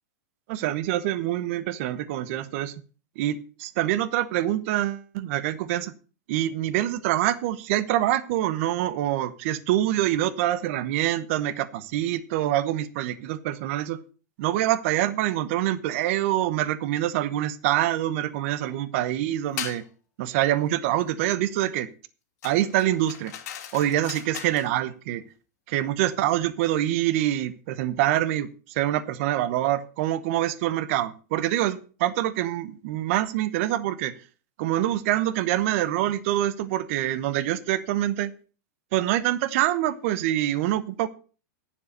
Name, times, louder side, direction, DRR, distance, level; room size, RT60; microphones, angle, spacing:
voice 1, 0.5-2.7 3.2-5.9 6.3-14.0 14.4-19.8 20.2-21.9 22.4-23.3 23.7-25.2 25.7-34.1 34.6-38.3 38.9-41.1, right 13 dB, 50° right, 16 dB, 1.0 m, -25 dB
sound 1, 19.6-19.9 22.4-24.7, left 10 dB, 65° left, 2.1 m, -38 dB
10.0 x 7.3 x 6.6 m, 0.37 s
supercardioid pair, 155°, 9 cm